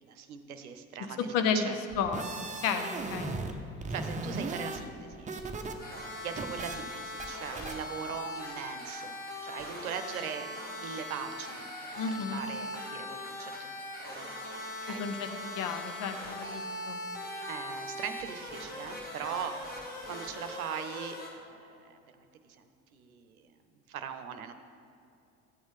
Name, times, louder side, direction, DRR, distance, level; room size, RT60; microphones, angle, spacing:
voice 1, 0.0-1.7 3.9-5.4 6.2-9.2 9.4-10.5 10.7-13.7 14.1-14.4 14.8-15.1 17.5-19.7 20.1-22.2 22.6-23.5 23.9-24.5, right 7 dB, 75° right, 8 dB, 0.8 m, -40 dB
voice 2, 1.2-2.3 2.6-3.3 12.0-12.4 14.9-17.0, left 6 dB, 50° left, 7 dB, 0.9 m, -32 dB
sound 1, 1.9-3.5 3.8-5.7 6.0-6.8 7.2-7.3 7.6-7.7, right 3 dB, 15° right, 0.9 m, -37 dB
sound 2, 5.8-21.3, left 1 dB, 20° left, 2.2 m, -40 dB
13.5 x 8.7 x 3.7 m, 2.6 s
figure-of-eight pair, 60°, 43 cm